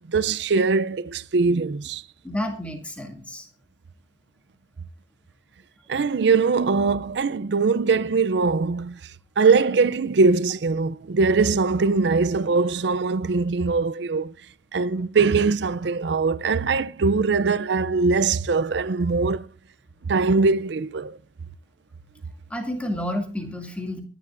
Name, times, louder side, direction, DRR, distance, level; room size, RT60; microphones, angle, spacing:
voice 1, 0.1-2.0 5.9-9.0 9.4-14.3 14.7-19.5 20.1-21.2, right 4 dB, 65° right, 0.5 m, -21 dB
voice 2, 2.2-3.5 22.5-24.0, left 1 dB, 5° left, 2.4 m, -30 dB
23.0 x 11.0 x 2.6 m
head